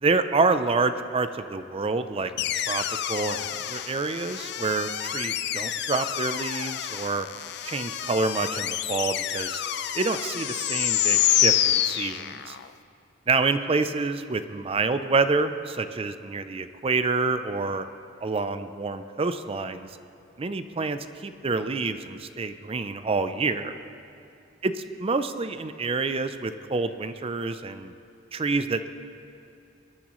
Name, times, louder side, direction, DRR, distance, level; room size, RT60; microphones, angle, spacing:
voice 1, 0.0-7.3 7.6-9.6 9.9-12.6 13.3-17.8 18.2-19.9 20.4-23.8 24.6-24.7 25.0-27.9 28.3-28.9, right 3 dB, 30° right, 10 dB, 0.4 m, -27 dB
sound 1, 2.4-12.7, left 12 dB, 55° left, 0.5 m, -28 dB
21.0 x 12.0 x 3.1 m, 2.7 s
head